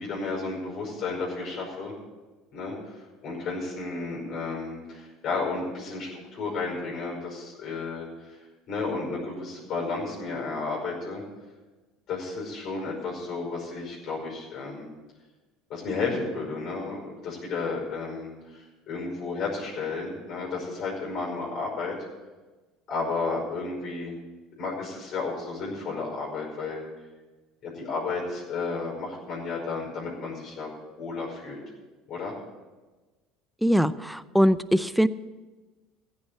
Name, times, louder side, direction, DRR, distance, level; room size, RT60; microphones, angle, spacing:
voice 1, 0.0-1.9 2.5-3.0 3.2-8.4 8.7-11.2 12.1-14.9 15.7-22.0 22.9-24.2 24.6-26.8 27.6-30.7 31.0-31.6 32.1-32.3, left 4 dB, 50° left, -2 dB, 5.3 m, -32 dB
voice 2, 33.6-35.1, equal, ahead, 16 dB, 0.5 m, -22 dB
15.0 x 7.1 x 8.1 m, 1.2 s
hypercardioid pair, 70°, 0 cm